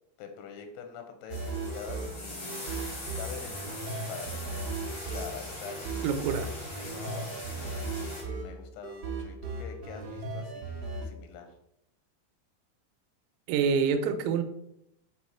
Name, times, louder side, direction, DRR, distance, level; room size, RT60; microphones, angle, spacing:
voice 1, 0.2-4.7 5.1-6.2 6.8-7.7 8.3-10.7 11.0-11.5, left 7 dB, 90° left, 6 dB, 3.1 m, -45 dB
sound 1, 1.3-8.2, left 1 dB, 45° left, 1.5 m, -41 dB
sound 2, 1.3-11.1, right 3 dB, 65° right, 1.7 m, -37 dB
voice 2, 6.0-6.5 13.5-14.4, right 6 dB, 80° right, 7 dB, 2.8 m, -26 dB
6.4 x 4.5 x 4.2 m, 0.78 s
omnidirectional pair, 5.3 m